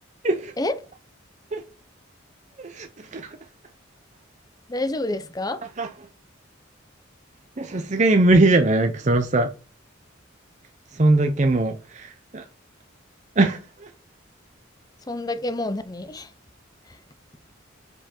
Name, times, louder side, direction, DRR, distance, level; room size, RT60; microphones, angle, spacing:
voice 1, 2.6-3.3 5.8-5.9 7.6-9.5 11.0-12.4 13.4-13.9, right 2 dB, 35° right, 0.6 m, -21 dB
voice 2, 4.7-5.6 15.1-16.3, left 2 dB, 20° left, 0.6 m, -28 dB
7.7 x 4.8 x 4.3 m
head